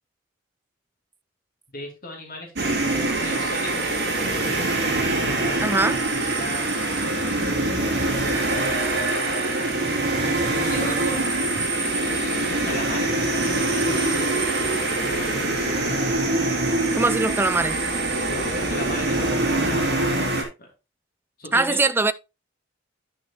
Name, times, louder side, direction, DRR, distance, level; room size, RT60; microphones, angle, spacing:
voice 1, 1.7-4.0 4.7-5.8 6.2-6.7 7.0-8.4 10.4-11.7 12.5-13.1 13.5-14.3 15.1-15.9 18.2-19.3 20.1-20.3 20.6-20.7 21.4-21.9, left 1 dB, 45° left, 2.9 m, -37 dB
sound 1, 2.6-20.4, right 2 dB, 55° right, 2.7 m, -24 dB
voice 2, 5.6-6.0 16.9-17.8 21.5-22.1, right 3 dB, 10° right, 0.3 m, -21 dB
10.0 x 6.3 x 3.0 m
head